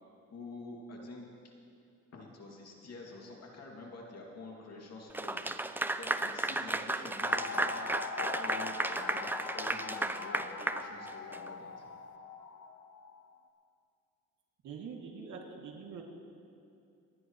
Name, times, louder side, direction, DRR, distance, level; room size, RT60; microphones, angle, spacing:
voice 1, 0.3-1.3 2.1-9.3 9.5-11.9, left 2 dB, 55° left, -1 dB, 2.5 m, -48 dB
Clapping / Applause, 5.1-11.5, right 2 dB, 5° right, 0.5 m, -34 dB
sound 1, 7.2-13.3, left 5 dB, 75° left, 0.9 m, -42 dB
voice 2, 14.6-16.0, right 5 dB, 75° right, 0 dB, 2.5 m, -44 dB
28.5 x 9.7 x 3.2 m, 2.6 s
cardioid pair, 90°, 30 cm